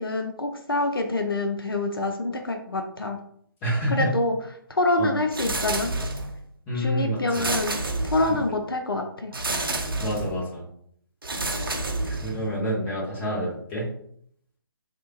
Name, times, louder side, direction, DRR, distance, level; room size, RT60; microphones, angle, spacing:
voice 1, 0.0-3.2 3.9-4.4 4.7-5.9 6.7-9.3, left 2 dB, 75° left, 4 dB, 0.5 m, -26 dB
voice 2, 3.6-4.1 5.0-5.1 6.7-7.5 8.3-8.4 10.0-10.6 12.0-13.9, equal, 15° left, -6 dB, 1.1 m, -28 dB
sound 1, 5.3-6.4 7.3-8.5 9.3-10.4 11.2-12.5, right 2 dB, 70° right, 0.6 m, -29 dB
3.2 x 2.6 x 2.9 m, 0.65 s
figure-of-eight pair, 145°, 12 cm